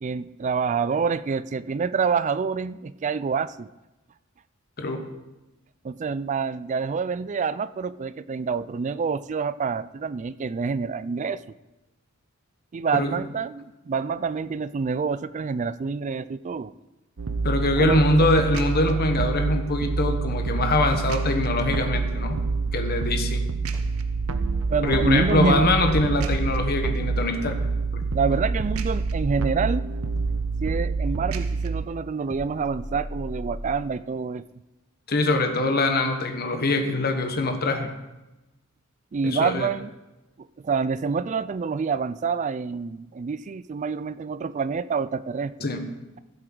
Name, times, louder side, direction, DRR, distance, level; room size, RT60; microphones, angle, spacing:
voice 1, 0.0-3.7 5.8-11.4 12.7-16.7 17.8-18.0 24.7-25.7 28.1-29.9 30.6-34.4 39.1-39.9 40.6-45.7, right 5 dB, 35° right, 16 dB, 0.3 m, -27 dB
sound 1, 17.2-31.8, right 4 dB, 80° right, 0.7 m, -27 dB
voice 2, 17.4-22.4 22.7-23.4 24.8-27.6 35.1-37.9 39.2-39.7 45.6-45.9, left 2 dB, 45° left, 6 dB, 1.2 m, -23 dB
sound 2, 21.6-22.9 23.7-25.4 25.9-27.3 28.0-29.6 30.2-31.6 32.3-33.9, equal, 15° left, 0.9 m, -37 dB
16.0 x 7.7 x 3.9 m, 1.0 s
head